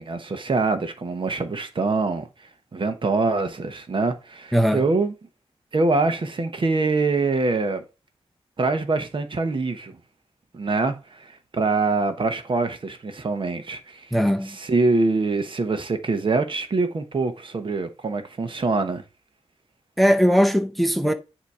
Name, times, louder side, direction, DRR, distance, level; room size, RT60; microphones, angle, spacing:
voice 1, 0.0-2.3 2.7-5.1 5.7-7.8 8.6-10.0 10.5-14.1 14.4-19.0, right 3 dB, 50° right, 1.0 m, -24 dB
voice 2, 4.5-4.8 14.1-14.6 20.0-21.1, equal, ahead, 0.6 m, -19 dB
8.1 x 2.9 x 4.8 m
wide cardioid pair, 90°, 11 cm